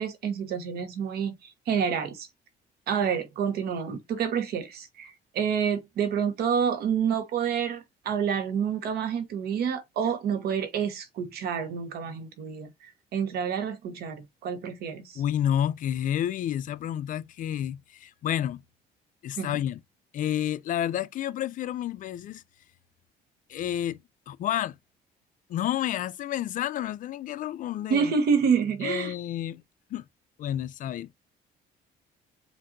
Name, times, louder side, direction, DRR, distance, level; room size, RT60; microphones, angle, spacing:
voice 1, 0.0-2.3 2.9-15.2 19.4-19.6 27.9-29.1, right 7 dB, 70° right, 1.1 m, -28 dB
voice 2, 15.2-18.6 19.2-19.8 20.1-22.4 23.5-24.0 24.3-24.7 25.5-28.1 28.8-29.6 29.9-30.0 30.4-31.1, left 11 dB, 50° left, 0.4 m, -30 dB
5.1 x 2.6 x 2.6 m
cardioid pair, 110°, 17 cm